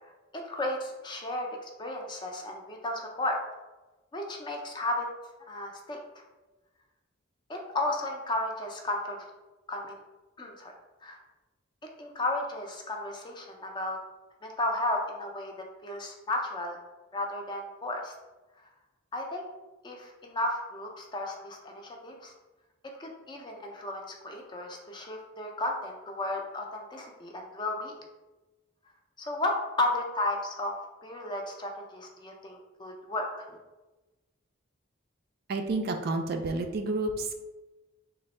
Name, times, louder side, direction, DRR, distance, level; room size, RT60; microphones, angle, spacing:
voice 1, 0.3-3.4 4.1-5.1 5.5-6.0 7.5-9.3 9.7-10.0 10.4-10.7 11.0-11.2 12.0-14.0 14.4-15.5 15.8-16.8 17.1-18.1 19.1-19.5 19.8-22.3 23.0-27.9 29.2-30.7 31.0-33.6, left 2 dB, 20° left, 2 dB, 0.4 m, -33 dB
voice 2, 35.5-37.4, right 2 dB, 50° right, 5 dB, 0.3 m, -30 dB
3.3 x 2.0 x 4.1 m, 1.1 s
head